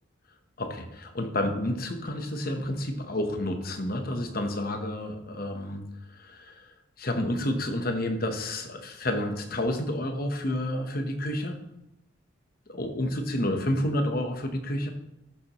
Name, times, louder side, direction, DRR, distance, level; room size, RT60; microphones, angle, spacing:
voice 1, 0.6-5.8 6.1-6.7 7.0-11.6 12.7-14.9, left 1 dB, 45° left, 5 dB, 1.1 m, -30 dB
13.5 x 6.9 x 3.1 m, 0.89 s
head